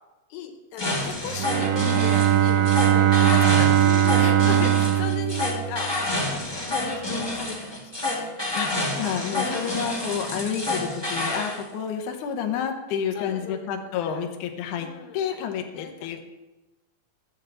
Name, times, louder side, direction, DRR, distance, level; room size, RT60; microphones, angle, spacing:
voice 1, 0.3-3.9 4.2-6.3 6.6-8.6 9.3-9.8 10.2-10.4 13.1-14.3 14.8-15.4 15.8-16.2, left 8 dB, 85° left, 5 dB, 3.1 m, -38 dB
sound 1, 0.8-11.6, left 2 dB, 10° left, 1.1 m, -29 dB
Bowed string instrument, 1.3-6.2, right 11 dB, 80° right, 2.4 m, -20 dB
voice 2, 3.8-4.4 8.5-14.9 15.1-16.2, left 8 dB, 70° left, 4 dB, 2.1 m, -30 dB
13.0 x 4.6 x 7.6 m, 1.1 s
omnidirectional pair, 4.6 m